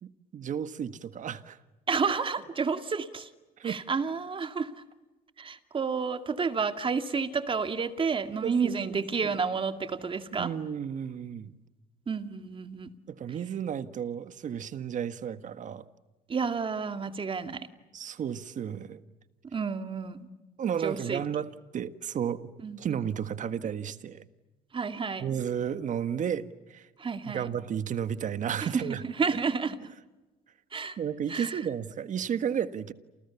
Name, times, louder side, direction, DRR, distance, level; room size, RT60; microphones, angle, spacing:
voice 1, 0.0-1.6 3.6-3.8 8.4-9.4 10.4-11.5 13.1-15.9 17.9-19.0 20.6-22.5 22.8-24.2 25.2-26.9 27.2-29.0 31.0-32.9, right 8 dB, 50° right, 12 dB, 1.5 m, -33 dB
voice 2, 1.9-3.3 3.6-4.8 5.4-10.5 12.1-12.9 16.3-17.7 19.5-20.3 20.8-21.2 22.6-23.0 24.7-25.2 27.0-27.5 28.7-29.8 30.7-31.0 31.3-31.6, right 5 dB, 30° right, 8 dB, 2.2 m, -30 dB
29.5 x 28.0 x 7.1 m, 1.2 s
cardioid pair, 110°, 17 cm